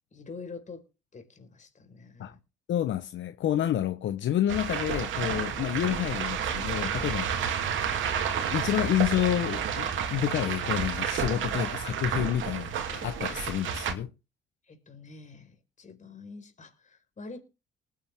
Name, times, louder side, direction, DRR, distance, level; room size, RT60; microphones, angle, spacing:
voice 1, 0.1-0.8 1.1-2.4 14.7-17.4, left 4 dB, 40° left, 4.7 m, -46 dB
voice 2, 2.7-7.7 8.5-14.1, left 11 dB, 70° left, 1.0 m, -29 dB
sound 1, 4.5-13.9, right 7 dB, 75° right, 2.7 m, -31 dB
20.0 x 9.7 x 3.6 m
cardioid pair, 90°, 20 cm